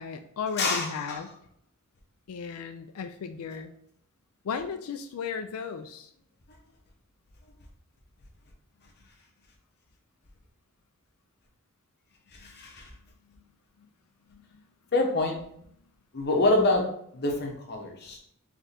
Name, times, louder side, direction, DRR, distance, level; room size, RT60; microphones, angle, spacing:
voice 1, 0.0-1.4 2.3-3.7 4.4-6.1 12.4-12.5 13.3-13.4 13.8-13.9 14.3-14.6, left 6 dB, 70° left, 7 dB, 0.4 m, -36 dB
voice 2, 0.6-1.2 12.4-12.9 14.9-15.5 16.1-18.2, left 2 dB, 50° left, 1 dB, 1.0 m, -26 dB
3.7 x 3.4 x 4.1 m, 0.67 s
head